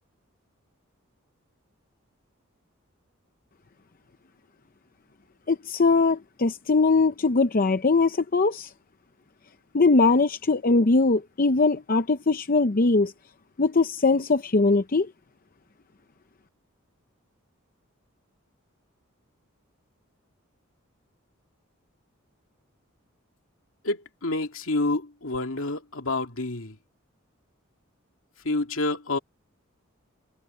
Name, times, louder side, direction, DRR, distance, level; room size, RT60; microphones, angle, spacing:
voice 1, 5.5-8.7 9.7-13.1 13.6-15.1, left 3 dB, 45° left, 0.7 m, -21 dB
voice 2, 23.8-26.8 28.4-29.2, left 2 dB, 75° left, 2.5 m, -28 dB
head